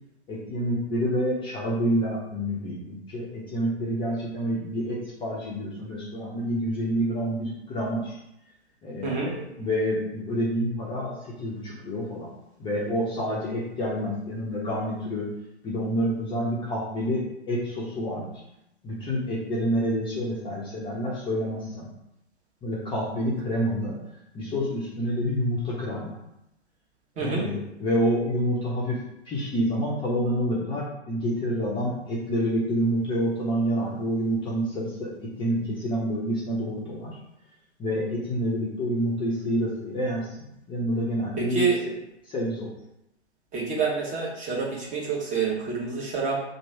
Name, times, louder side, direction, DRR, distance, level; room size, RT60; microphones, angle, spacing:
voice 1, 0.3-8.2 8.8-12.3 12.6-15.3 15.6-18.3 18.8-21.9 22.6-23.9 24.3-26.2 27.2-29.0 29.3-35.1 35.4-37.1 37.8-41.7 42.2-42.7, equal, 15° left, -6 dB, 0.6 m, -28 dB
voice 2, 9.0-9.3 27.2-27.4 41.4-41.8 43.5-46.4, right 5 dB, 20° right, -3 dB, 1.0 m, -27 dB
2.9 x 2.6 x 4.4 m, 0.84 s
figure-of-eight pair, 110°, 34 cm